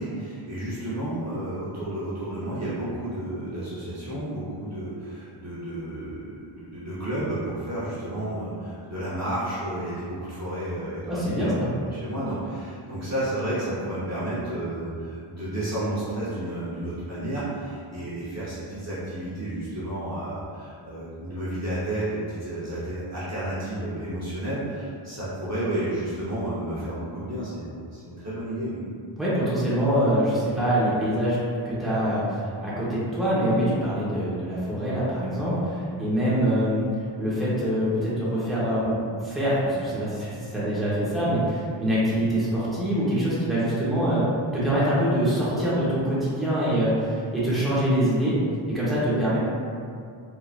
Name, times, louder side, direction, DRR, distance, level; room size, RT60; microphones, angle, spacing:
voice 1, 0.0-28.8, right 1 dB, 30° right, -11 dB, 0.9 m, -31 dB
voice 2, 11.1-11.7 29.2-31.4 31.6-36.9 37.2-48.4 48.7-49.4, equal, ahead, -10 dB, 1.1 m, -24 dB
3.5 x 2.9 x 2.5 m, 2.3 s
wide cardioid pair, 75°, 50 cm